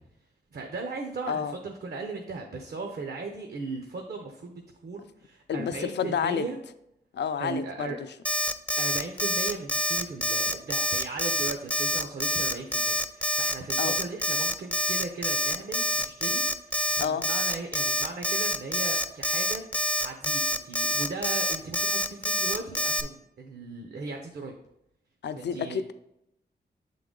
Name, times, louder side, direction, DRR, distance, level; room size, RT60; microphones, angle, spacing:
voice 1, 0.5-6.6 7.4-8.0 8.8-19.6 20.0-24.6 25.4-25.8, right 3 dB, 70° right, 3 dB, 0.7 m, -37 dB
voice 2, 5.5-6.5 7.1-8.1 13.8-14.0 17.0-17.3 25.2-25.9, left 7 dB, 85° left, 11 dB, 0.4 m, -30 dB
Alarm, 8.2-23.0, equal, 10° left, 0.3 m, -27 dB
7.7 x 3.8 x 3.7 m, 0.82 s
wide cardioid pair, 120°, 18 cm